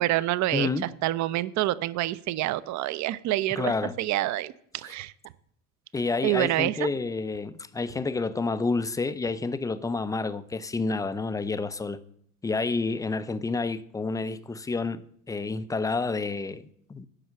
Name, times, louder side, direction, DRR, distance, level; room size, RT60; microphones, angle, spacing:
voice 1, 0.0-0.7 1.0-5.1 6.2-6.9, right 15 dB, 40° right, 0.6 m, -27 dB
voice 2, 0.5-0.9 3.6-4.0 4.8-4.9 5.9-12.0 12.4-17.1, left 3 dB, 10° left, 0.4 m, -29 dB
9.9 x 6.3 x 6.8 m
figure-of-eight pair, 65°, 45 cm